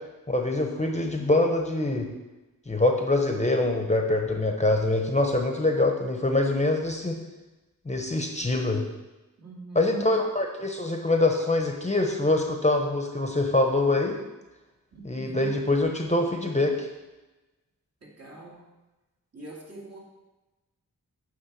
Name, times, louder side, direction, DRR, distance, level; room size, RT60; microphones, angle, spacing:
voice 1, 0.3-2.1 2.7-7.2 7.9-8.8 9.7-14.2 15.0-16.9, left 2 dB, 20° left, 3 dB, 0.9 m, -24 dB
voice 2, 9.4-10.3 14.9-15.6 18.0-18.6 19.3-20.0, right 3 dB, 50° right, -3 dB, 2.4 m, -42 dB
9.2 x 3.6 x 7.0 m, 1.1 s
wide cardioid pair, 75°, 34 cm